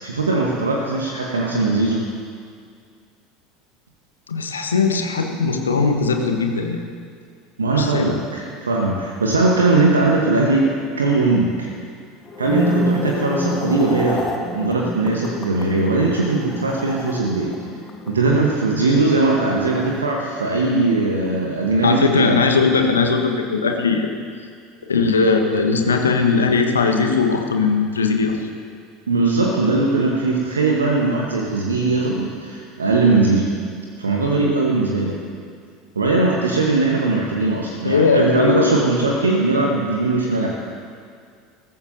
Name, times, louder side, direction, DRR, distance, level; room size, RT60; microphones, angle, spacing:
voice 1, 0.0-2.0 7.6-11.7 12.4-17.5 18.1-22.4 29.1-33.5 34.0-35.2 35.9-40.5, right 3 dB, 75° right, -1 dB, 1.2 m, -20 dB
voice 2, 4.3-6.8 7.7-8.2 21.8-24.1 24.9-28.4 37.8-38.8, left 4 dB, 75° left, 4 dB, 1.2 m, -19 dB
sound 1, 12.2-20.6 20.9-21.3, left 1 dB, 25° left, 1.5 m, -28 dB
21.0 x 14.5 x 2.7 m, 2.2 s
figure-of-eight pair, 75°, 0 cm